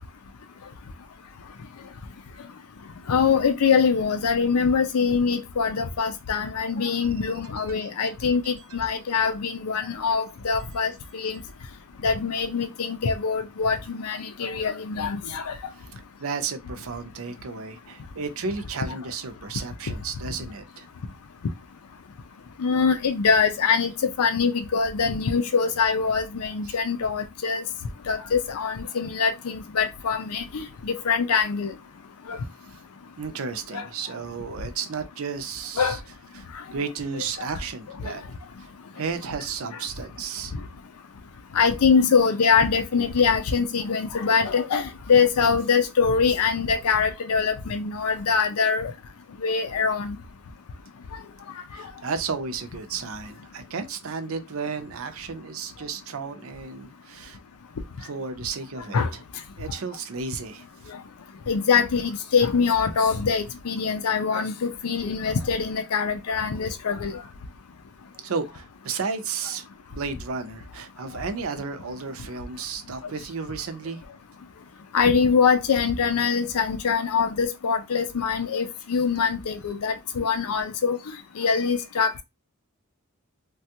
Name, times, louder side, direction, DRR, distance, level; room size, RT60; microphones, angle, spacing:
voice 1, 3.1-11.4 12.0-15.6 22.6-27.6 28.1-31.7 32.3-32.4 33.7-33.8 35.8-36.0 37.4-37.5 38.0-38.1 41.5-48.9 49.4-50.2 58.9-59.1 61.5-67.2 71.1-71.2 74.9-81.0 81.4-82.2, left 5 dB, 85° left, 0.5 m, -23 dB
voice 2, 7.6-7.9 15.8-15.9 16.2-20.9 26.7-26.8 33.2-36.0 36.3-36.5 36.7-38.2 38.6-38.7 39.0-40.5 51.7-57.4 58.0-59.2 59.6-60.7 68.2-74.0, right 5 dB, 65° right, 0.5 m, -33 dB
3.2 x 2.3 x 2.8 m
head